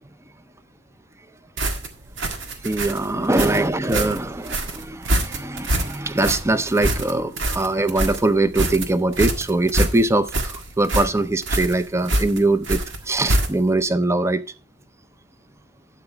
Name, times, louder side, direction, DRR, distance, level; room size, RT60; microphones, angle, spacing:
sound 1, 1.6-13.8, right 1 dB, 90° right, 1.6 m, -25 dB
voice 1, 2.6-12.8 13.1-14.4, right 2 dB, 15° right, 0.6 m, -22 dB
12.0 x 8.0 x 3.3 m
head